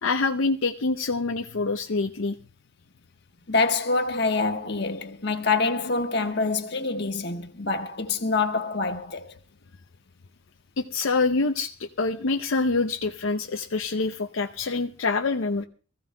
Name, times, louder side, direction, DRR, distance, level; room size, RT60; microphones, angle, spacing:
voice 1, 0.0-2.4 10.8-15.6, left 3 dB, 75° left, 0.6 m, -26 dB
voice 2, 3.5-9.3, left 3 dB, 55° left, 1.3 m, -26 dB
24.0 x 15.0 x 2.2 m
head